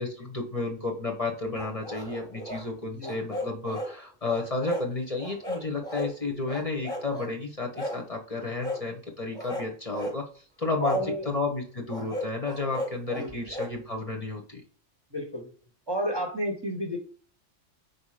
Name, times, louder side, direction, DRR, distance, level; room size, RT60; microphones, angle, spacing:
voice 1, 0.0-11.0 11.3-14.6, left 3 dB, 30° left, 1 dB, 1.0 m, -32 dB
sound 1, 1.5-2.7 3.0-3.9 4.3-4.9 5.2-6.1 6.5-7.3 7.7-8.0 8.6-8.8 9.3-10.2 10.8-11.1 11.9-13.7, left 1 dB, 5° left, 1.2 m, -35 dB
voice 2, 10.8-11.3 13.1-13.5 15.1-15.5 15.9-17.0, equal, 20° right, 1 dB, 1.0 m, -31 dB
4.7 x 4.3 x 4.9 m, 0.42 s
omnidirectional pair, 1.2 m